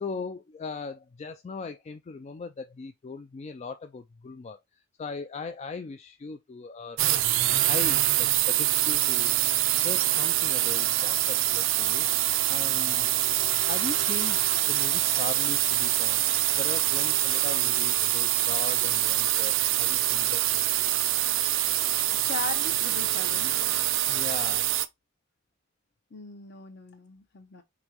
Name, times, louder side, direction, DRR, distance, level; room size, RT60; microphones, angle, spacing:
voice 1, 0.0-7.2 7.7-9.3 9.8-12.1 12.5-13.1 13.4-16.2 16.6-20.7 24.1-24.7, left 4 dB, 35° left, 0.3 m, -39 dB
sound 1, 7.0-24.9, right 14 dB, 70° right, 0.4 m, -25 dB
voice 2, 21.9-23.6 26.1-27.6, left 5 dB, 60° left, 1.1 m, -39 dB
5.3 x 3.1 x 2.9 m
head